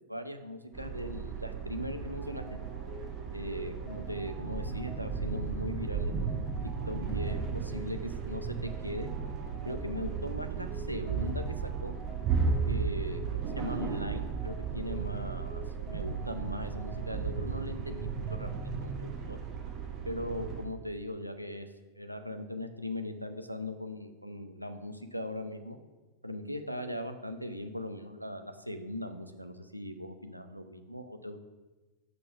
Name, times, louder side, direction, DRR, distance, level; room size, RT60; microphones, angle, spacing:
voice 1, 0.1-2.6 3.3-6.4 6.9-9.1 9.7-11.9 12.7-19.4 20.0-21.7 22.0-25.8 26.2-31.4, left 1 dB, 90° right, 7 dB, 0.4 m, -39 dB
sound 1, 0.7-20.6, right 5 dB, 30° right, 1.0 m, -35 dB
sound 2, 2.2-18.6, left 3 dB, 10° left, 1.3 m, -50 dB
5.7 x 3.8 x 5.7 m, 1.2 s
figure-of-eight pair, 90°, 0 cm